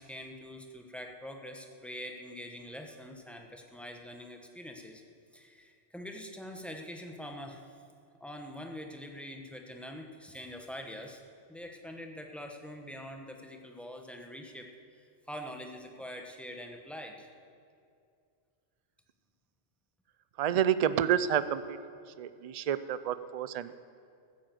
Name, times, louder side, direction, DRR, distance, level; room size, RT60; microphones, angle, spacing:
voice 1, 0.0-5.0 5.3-7.6 8.2-11.2 11.5-14.7 15.3-17.3, equal, ahead, 2 dB, 1.1 m, -44 dB
voice 2, 20.4-21.8 22.2-23.8, right 9 dB, 60° right, 14 dB, 0.4 m, -29 dB
15.0 x 9.4 x 7.7 m, 2.4 s
omnidirectional pair, 1.2 m